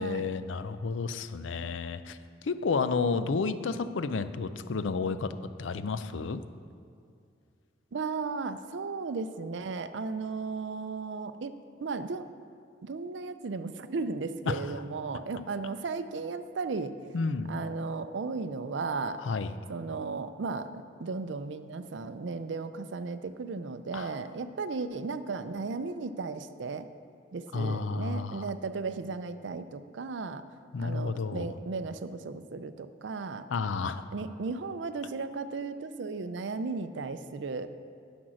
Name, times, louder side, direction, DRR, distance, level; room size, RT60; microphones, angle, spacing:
voice 1, 0.0-2.2 2.4-6.4 14.5-14.7 17.1-17.5 19.2-19.6 23.9-24.2 27.5-28.5 30.7-31.5 33.5-34.0, left 4 dB, 80° left, 12 dB, 0.5 m, -31 dB
voice 2, 7.9-12.3 12.8-17.0 17.5-19.2 19.7-26.9 27.3-30.4 30.8-33.5 34.1-37.7, right 4 dB, 65° right, 11 dB, 0.5 m, -35 dB
10.0 x 6.1 x 6.3 m, 2.3 s
head